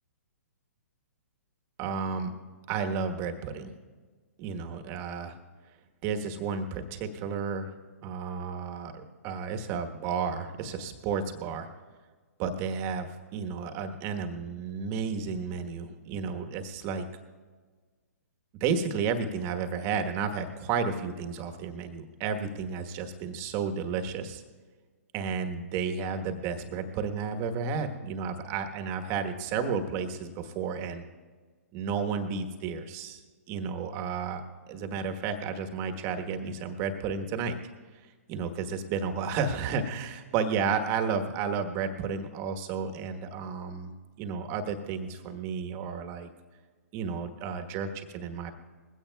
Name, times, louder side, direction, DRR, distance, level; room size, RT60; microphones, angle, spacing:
voice 1, 1.8-2.3 2.7-3.7 4.4-5.4 6.0-7.7 8.0-11.7 12.4-17.0 18.6-24.4 25.1-31.1 31.7-33.2 33.5-34.4 34.7-37.6 38.3-43.9 44.2-46.3 46.9-48.5, right 5 dB, 30° right, 6 dB, 1.2 m, -32 dB
21.0 x 16.0 x 2.3 m, 1.5 s
hypercardioid pair, 130°, 9 cm